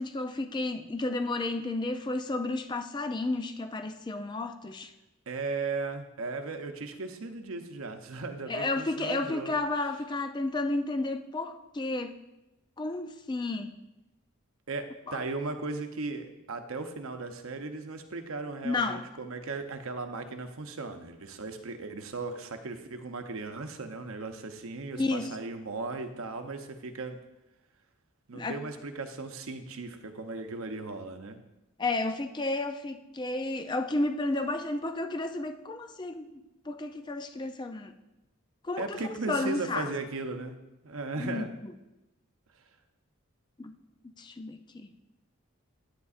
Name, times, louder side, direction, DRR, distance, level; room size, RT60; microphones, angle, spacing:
voice 1, 0.0-4.9 8.5-12.2 12.8-13.7 15.1-15.2 18.6-19.1 25.0-25.3 28.3-28.6 31.8-36.4 36.7-37.9 38.6-39.9 41.2-41.7 43.6-43.7 44.2-44.9, left 2 dB, 20° left, 7 dB, 0.3 m, -32 dB
voice 2, 5.3-9.5 14.7-27.2 28.3-31.4 38.8-40.6 40.8-41.6, right 3 dB, 70° right, 7 dB, 0.7 m, -37 dB
9.6 x 9.2 x 2.5 m, 0.95 s
head